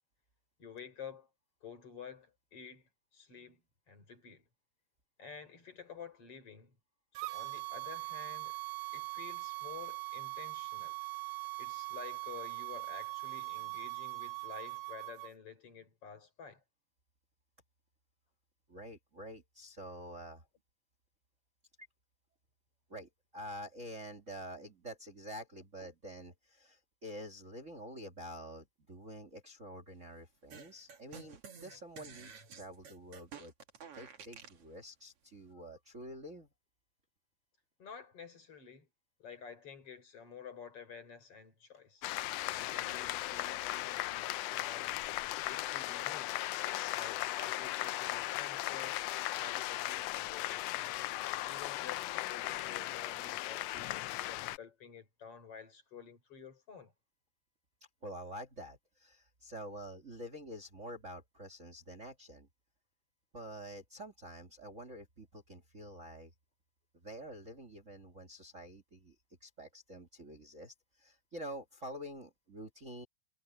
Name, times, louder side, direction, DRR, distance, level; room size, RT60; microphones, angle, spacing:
voice 1, 0.6-1.3 1.6-3.6 3.9-4.4 5.2-6.8 7.1-8.6 8.9-11.0 11.6-16.6 37.8-38.9 39.2-42.1 42.5-45.0 45.4-46.5 46.9-49.0 49.4-56.9, left 6 dB, 50° left, 5.0 m, -51 dB
sound 1, 7.1-15.3, right 23 dB, 85° right, 2.4 m, -41 dB
voice 2, 18.7-20.5 22.9-33.5 33.9-36.5 58.0-62.5 63.3-66.3 67.0-69.1 69.4-73.1, equal, 30° right, 2.2 m, -47 dB
sound 2, 30.5-34.6, right 6 dB, 50° right, 2.9 m, -51 dB
sound 3, 42.0-54.6, left 16 dB, 80° left, 1.5 m, -37 dB
omnidirectional pair, 3.4 m